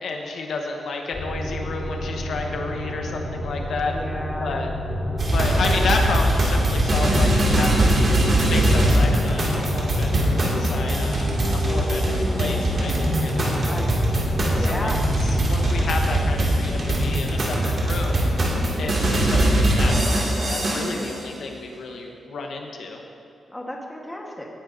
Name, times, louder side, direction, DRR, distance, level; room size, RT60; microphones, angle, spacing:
voice 1, 0.0-3.9 4.4-4.7 5.3-8.0 8.3-13.8 14.6-18.2 18.8-23.0, left 3 dB, 65° left, 2 dB, 1.0 m, -31 dB
sound 1, 1.1-19.2, left 1 dB, 25° left, 2.4 m, -29 dB
voice 2, 3.9-4.6 13.4-13.9 14.6-15.0 23.5-24.5, left 1 dB, 10° left, -1 dB, 1.2 m, -33 dB
sound 2, 5.2-21.1, right 1 dB, 40° right, 2.2 m, -22 dB
17.5 x 10.5 x 2.6 m, 2.9 s
wide cardioid pair, 160°, 0 cm